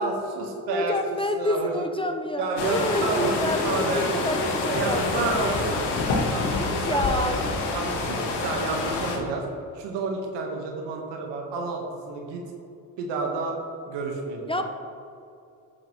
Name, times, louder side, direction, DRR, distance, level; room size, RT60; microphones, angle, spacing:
voice 1, 0.0-1.0 1.4-1.8 2.4-5.8 6.3-7.4 7.6-9.5 9.7-12.4 13.0-13.6 13.8-14.6, right 3 dB, 85° right, 1 dB, 1.5 m, -30 dB
voice 2, 0.7-5.7 6.6-7.4 14.5-14.6, left 1 dB, 15° left, 6 dB, 0.6 m, -28 dB
sound 1, 2.6-9.2, left 3 dB, 75° left, 1.5 m, -27 dB
11.0 x 6.0 x 3.2 m, 2.6 s
supercardioid pair, 75°, 41 cm